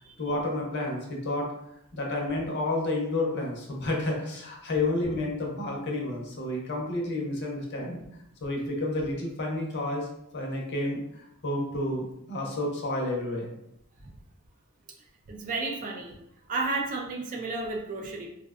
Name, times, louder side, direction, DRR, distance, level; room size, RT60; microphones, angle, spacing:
voice 1, 0.2-1.5 1.9-8.0 8.4-10.1 10.3-13.5, left 2 dB, 50° left, 0 dB, 0.6 m, -30 dB
voice 2, 15.3-16.2 16.5-18.3, right 3 dB, 35° right, 1 dB, 0.3 m, -32 dB
2.6 x 2.1 x 2.3 m, 0.78 s
head